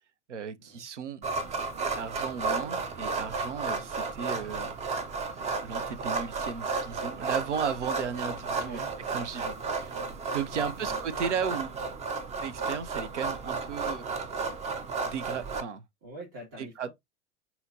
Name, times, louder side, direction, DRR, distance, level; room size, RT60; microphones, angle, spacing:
voice 1, 0.3-1.2 1.9-4.8 5.6-8.8 9.1-10.0 10.3-11.7 12.4-14.2 15.0-15.8 16.6-16.9, right 7 dB, 90° right, 0.6 m, -35 dB
sound 1, 1.2-15.6, right 4 dB, 20° right, 0.5 m, -33 dB
voice 2, 8.5-9.0 9.5-10.2 10.8-11.4 16.0-16.9, right 1 dB, 40° right, 1.9 m, -46 dB
5.5 x 2.8 x 2.6 m
hypercardioid pair, 90°, 34 cm